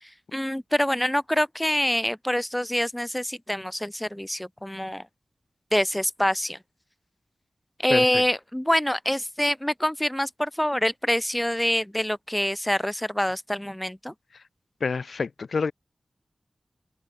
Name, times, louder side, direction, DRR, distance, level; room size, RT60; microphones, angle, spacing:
voice 1, 0.0-5.0 5.7-6.6 7.8-14.1, equal, 10° left, 1.8 m, -26 dB
voice 2, 14.8-15.7, left 5 dB, 90° left, 0.7 m, -27 dB
wide cardioid pair, 75°, 0 cm